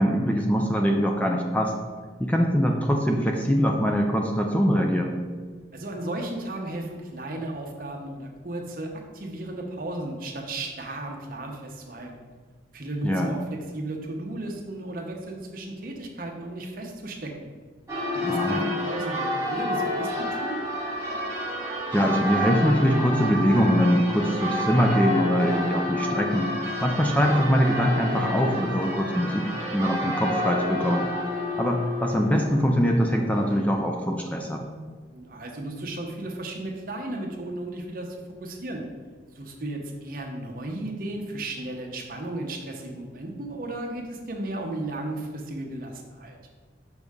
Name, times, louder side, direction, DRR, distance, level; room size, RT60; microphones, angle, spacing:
voice 1, 0.0-1.7 2.2-5.2 13.0-13.3 18.2-18.7 21.9-26.5 26.8-31.1 31.6-34.8, equal, 10° left, 2 dB, 0.4 m, -23 dB
voice 2, 5.7-12.3 12.7-17.3 18.3-20.6 35.1-38.8 39.3-46.4, right 2 dB, 50° right, 2 dB, 0.9 m, -34 dB
Church bell, 17.9-33.6, left 1 dB, 15° right, 1.2 m, -30 dB
6.4 x 5.2 x 3.6 m, 1.5 s
head